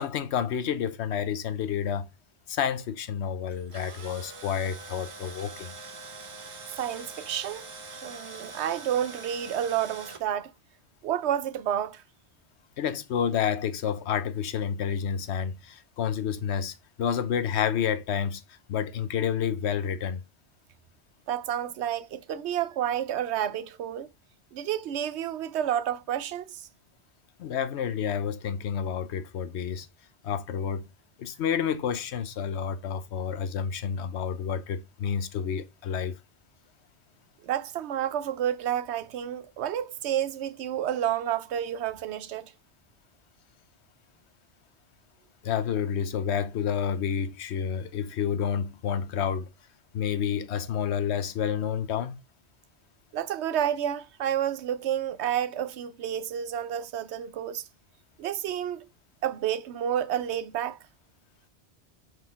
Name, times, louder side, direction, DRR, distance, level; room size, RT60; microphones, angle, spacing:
voice 1, 0.0-2.1 2.5-5.7 12.8-18.4 18.7-20.2 27.4-29.9 30.2-30.9 31.2-36.2 45.4-49.5 49.9-52.2, left 8 dB, 85° left, 0.9 m, -29 dB
Tools, 3.5-10.2, right 3 dB, 35° right, 0.6 m, -43 dB
voice 2, 6.8-7.7 8.0-10.5 11.0-12.0 21.3-24.1 24.5-26.7 37.4-42.5 53.1-57.7 58.2-58.9 59.2-60.8, right 10 dB, 85° right, 0.9 m, -30 dB
4.5 x 4.0 x 5.7 m
omnidirectional pair, 1.1 m